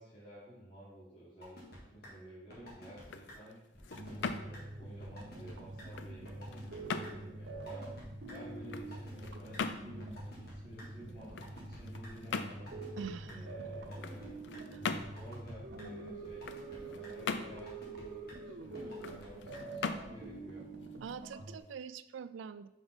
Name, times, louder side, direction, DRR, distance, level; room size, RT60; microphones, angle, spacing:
voice 1, 0.0-3.6 4.1-7.9 8.3-12.6 13.2-14.5 14.7-20.7, right 1 dB, 30° left, -10 dB, 1.6 m, -53 dB
sound 1, 1.4-1.8 2.0-2.1 2.5-3.0 3.3-3.4 3.7-4.3 4.5-4.6 5.0-5.5 5.8-5.9 6.3-6.8 7.0-7.1 7.5-8.0 8.3-8.4 8.7-9.3 9.5-9.6 10.0-10.8 11.2-12.1 12.5-13.0 13.3-13.4 13.7-14.3 14.5-14.6 15.0-15.5 15.8-15.9 16.2-16.8 17.0-17.1 17.5-18.0 18.3-18.4 18.8-19.3 19.5-19.6 20.0-20.1, left 1 dB, 55° left, 1.7 m, -51 dB
sound 2, 2.9-21.7, left 4 dB, 70° left, 0.4 m, -43 dB
sound 3, 4.0-21.6, right 2 dB, 65° right, 0.8 m, -46 dB
voice 2, 13.0-13.5 14.7-14.8 21.0-22.7, right 6 dB, 85° right, 14 dB, 0.4 m, -44 dB
5.8 x 5.3 x 4.0 m, 0.91 s
head